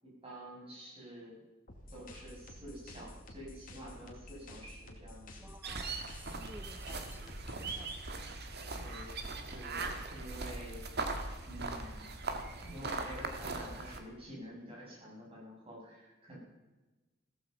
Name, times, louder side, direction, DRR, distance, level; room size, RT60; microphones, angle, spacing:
voice 1, 0.0-1.4 1.9-5.5 8.8-9.1 9.4-10.9 11.5-12.1 12.6-16.4, equal, 30° right, -4 dB, 7.5 m, -48 dB
sound 1, 1.7-8.1, left 1 dB, 45° left, 2.6 m, -51 dB
voice 2, 5.4-7.9, right 1 dB, 10° right, 9 dB, 1.2 m, -54 dB
sound 2, 5.6-14.0, right 3 dB, 55° right, 1.8 m, -40 dB
16.0 x 14.5 x 5.5 m, 1.2 s
head